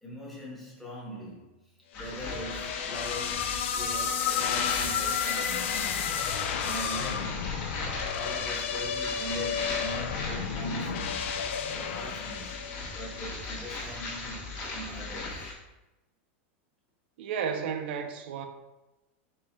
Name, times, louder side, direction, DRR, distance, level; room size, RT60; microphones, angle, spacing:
voice 1, 0.0-1.5 1.9-6.0 6.6-7.5 8.1-11.3 11.6-12.6 12.9-15.5, right 1 dB, ahead, 1.0 m, -41 dB
sound 1, 1.9-15.5, left 3 dB, 30° left, 0.9 m, -39 dB
sound 2, 2.0-13.3, left 7 dB, 75° left, 0.4 m, -32 dB
voice 2, 17.2-18.5, right 7 dB, 60° right, 0.5 m, -32 dB
4.8 x 4.3 x 2.3 m
supercardioid pair, 170°, 7 cm